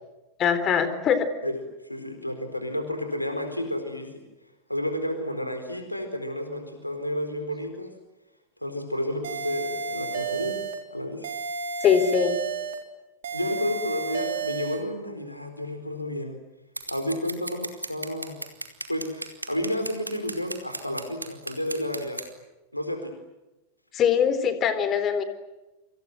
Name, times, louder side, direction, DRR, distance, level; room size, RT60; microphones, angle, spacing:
voice 1, 0.4-1.3 11.8-12.4 23.9-25.2, left 7 dB, 30° left, 12 dB, 3.9 m, -22 dB
voice 2, 1.4-4.1 4.7-7.9 8.6-10.6 10.9-11.3 13.3-16.4 16.9-18.4 18.9-22.2 22.7-23.1, left 1 dB, 85° left, 6 dB, 4.3 m, -31 dB
sound 1, 9.2-10.8 11.2-12.8 13.2-14.8, right 5 dB, 60° right, 4.0 m, -31 dB
Scissors, 16.8-22.3, right 2 dB, 85° right, 2.8 m, -36 dB
29.5 x 25.5 x 7.8 m, 1.0 s
figure-of-eight pair, 90°, 0 cm